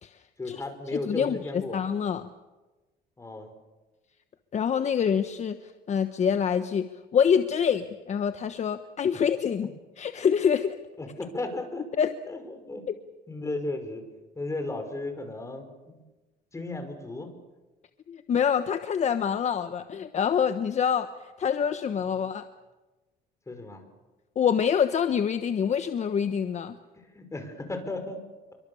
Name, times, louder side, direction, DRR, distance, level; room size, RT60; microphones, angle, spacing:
voice 1, 0.4-1.8 3.2-3.5 11.0-12.0 12.3-12.9 13.3-14.1 14.4-16.0 16.5-17.3 22.1-22.3 23.5-23.8 27.0-28.2, left 2 dB, 15° left, 6 dB, 5.3 m, -35 dB
voice 2, 0.9-2.3 4.5-10.7 12.0-12.1 12.9-13.0 18.1-21.1 21.4-22.4 24.4-26.8, left 7 dB, 45° left, 9 dB, 1.2 m, -26 dB
28.5 x 24.0 x 7.1 m, 1.2 s
cardioid pair, 110°, 17 cm